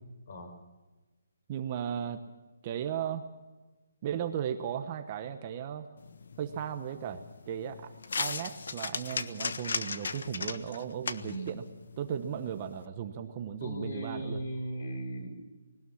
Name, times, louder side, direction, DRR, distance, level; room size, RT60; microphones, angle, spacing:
voice 1, 1.5-2.2 2.6-3.2 4.0-5.9 6.4-7.9 8.2-11.6 12.0-14.4, right 9 dB, 25° right, 7 dB, 1.0 m, -36 dB
sound 1, 6.0-12.9, left 4 dB, 65° left, 1.4 m, -38 dB
voice 2, 11.2-11.5 13.6-15.4, right 1 dB, 45° left, 8 dB, 5.5 m, -37 dB
20.5 x 19.0 x 7.1 m, 1.2 s
hypercardioid pair, 175°, 0 cm